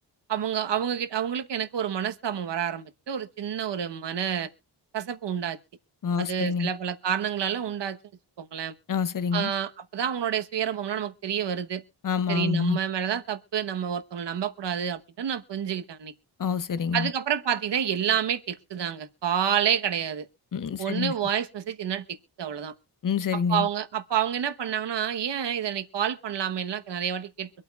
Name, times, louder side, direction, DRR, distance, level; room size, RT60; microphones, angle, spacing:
voice 1, 0.3-4.5 4.9-5.6 6.2-8.0 8.4-8.7 9.3-11.8 12.3-16.1 16.9-20.3 20.8-22.7 23.3-27.5, right 9 dB, 75° right, 1.1 m, -29 dB
voice 2, 6.0-6.7 8.9-9.5 12.0-12.8 16.4-17.1 20.5-21.1 23.0-23.7, left 6 dB, 50° left, 0.7 m, -27 dB
24.5 x 8.6 x 2.4 m
wide cardioid pair, 170°, 42 cm